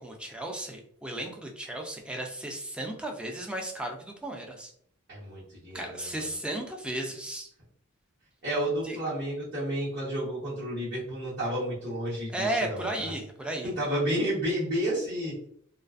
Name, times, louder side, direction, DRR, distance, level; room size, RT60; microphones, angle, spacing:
voice 1, 0.0-4.7 5.7-7.5 8.8-9.0 12.3-13.7, right 1 dB, 5° right, 1 dB, 0.3 m, -34 dB
voice 2, 5.1-6.3 8.4-13.1 13.6-15.3, equal, 50° right, -11 dB, 1.1 m, -31 dB
2.4 x 2.3 x 2.4 m, 0.65 s
head